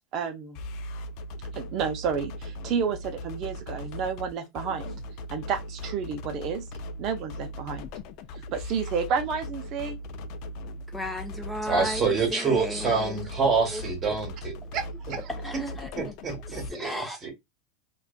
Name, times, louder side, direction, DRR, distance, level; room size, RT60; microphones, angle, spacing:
voice 1, 0.1-0.6 1.5-4.9 5.3-6.6 7.0-7.9 8.5-10.0 14.7-15.3, right 6 dB, 45° right, 0.5 m, -30 dB
sound 1, 0.5-16.7, left 1 dB, 50° left, 0.3 m, -38 dB
voice 2, 10.9-13.2 13.7-13.8 14.1-14.2 15.3-16.1 16.7-17.2, equal, 5° left, 0.6 m, -34 dB
voice 3, 11.6-14.5 16.0-17.3, right 4 dB, 25° right, 1.2 m, -27 dB
2.4 x 2.3 x 2.3 m
supercardioid pair, 130°, 0 cm